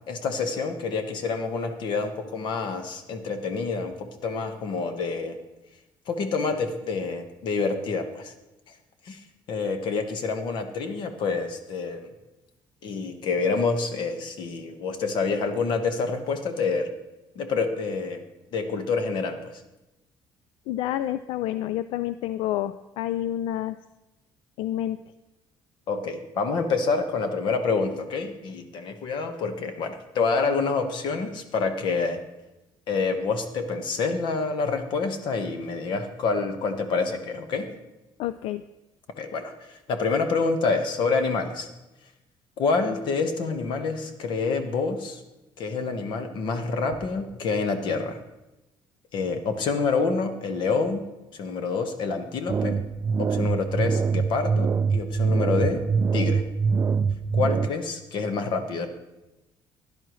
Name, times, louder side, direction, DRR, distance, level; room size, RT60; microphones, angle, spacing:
voice 1, 0.0-5.4 6.1-8.3 9.1-9.2 9.5-12.1 12.8-16.9 17.3-18.2 18.5-19.5 25.9-32.2 32.9-37.7 39.2-41.7 42.6-45.2 45.6-48.2 49.1-51.1 51.3-52.8 53.2-55.8 56.1-56.4 57.3-58.9, left 4 dB, 55° left, 7 dB, 1.3 m, -27 dB
voice 2, 20.7-23.8 24.6-25.0 38.2-38.6, left 13 dB, 85° left, 13 dB, 0.4 m, -29 dB
sound 1, 52.5-57.7, right 5 dB, 30° right, 0.3 m, -24 dB
16.0 x 11.0 x 3.1 m, 1.0 s
cardioid pair, 150°, 9 cm